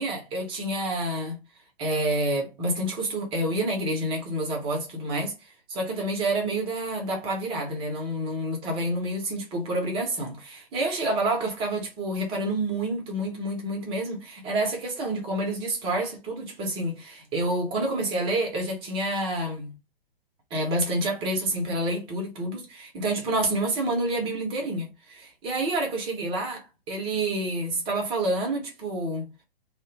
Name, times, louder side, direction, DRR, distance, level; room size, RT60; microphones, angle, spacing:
voice 1, 0.0-1.4 1.8-5.3 5.7-19.8 20.5-29.3, right 1 dB, 20° right, 0.7 m, -28 dB
2.4 x 2.1 x 3.0 m
figure-of-eight pair, 115°, 29 cm